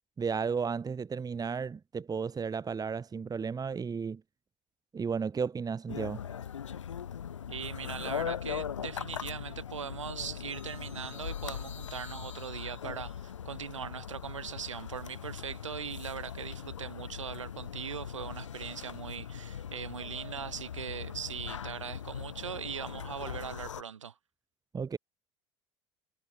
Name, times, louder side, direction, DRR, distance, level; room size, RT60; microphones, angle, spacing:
voice 1, 0.2-4.2 4.9-6.2 24.7-25.0, right 5 dB, 25° right, 2.4 m, -33 dB
sound 1, 5.9-23.8, left 8 dB, 80° left, 3.6 m, -40 dB
voice 2, 7.5-24.1, right 7 dB, 80° right, 7.8 m, -40 dB
figure-of-eight pair, 70°, 16 cm